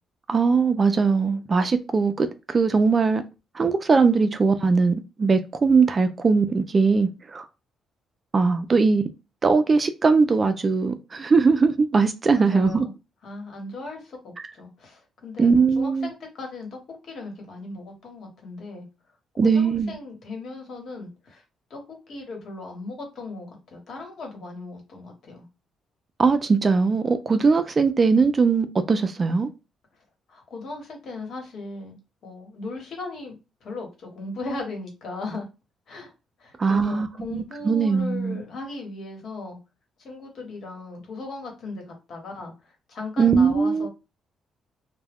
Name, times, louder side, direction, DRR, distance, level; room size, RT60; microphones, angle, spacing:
voice 1, 0.3-3.2 3.5-7.5 8.3-9.0 9.4-12.9 15.4-16.1 19.4-19.9 26.2-29.5 36.6-38.4 43.2-43.9, right 4 dB, 35° right, 0.3 m, -20 dB
voice 2, 12.3-12.9 13.2-18.9 19.4-21.4 21.7-21.8 22.1-25.5 30.3-32.0 32.2-33.3 33.6-35.5 35.9-36.1 36.4-39.6 40.0-42.5 42.9-43.9, left 3 dB, 65° left, 1.2 m, -37 dB
2.2 x 2.1 x 3.4 m
cardioid pair, 90°, 0 cm